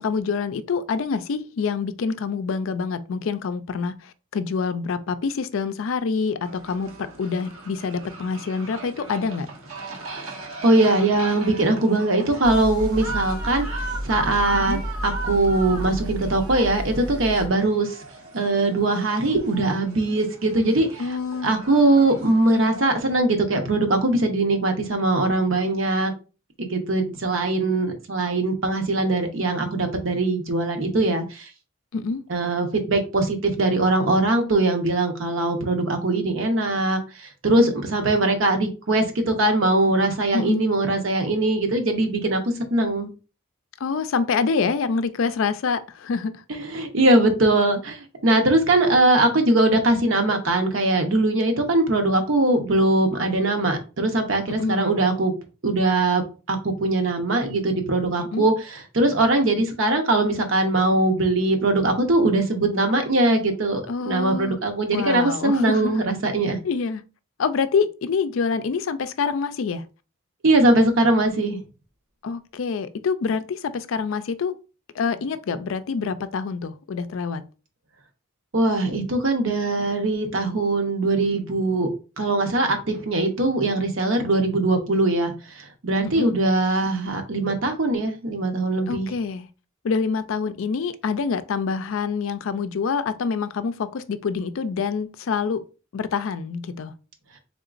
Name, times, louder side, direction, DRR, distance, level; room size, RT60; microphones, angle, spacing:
voice 1, 0.0-9.5 14.5-14.8 21.0-21.5 31.9-32.2 40.3-40.6 43.8-46.4 54.6-55.0 58.2-58.5 63.9-64.6 64.9-66.0 66.6-67.0 67.4-69.8 72.2-74.6 74.9-77.4 86.2-86.3 88.9-89.5 89.8-95.6 95.9-96.9, left 5 dB, 70° left, 0.4 m, -26 dB
sound 1, 6.4-23.2, right 3 dB, 85° right, 1.0 m, -38 dB
voice 2, 10.6-13.7 14.0-14.8 15.0-18.0 18.3-21.0 21.4-26.1 26.6-31.5 32.3-42.4 42.7-43.1 46.5-55.3 55.6-58.5 58.9-66.6 70.4-71.6 78.5-81.9 82.2-89.1, right 2 dB, 65° right, 0.9 m, -21 dB
sound 2, 12.4-17.5, equal, 20° right, 0.5 m, -32 dB
3.8 x 3.6 x 2.5 m
head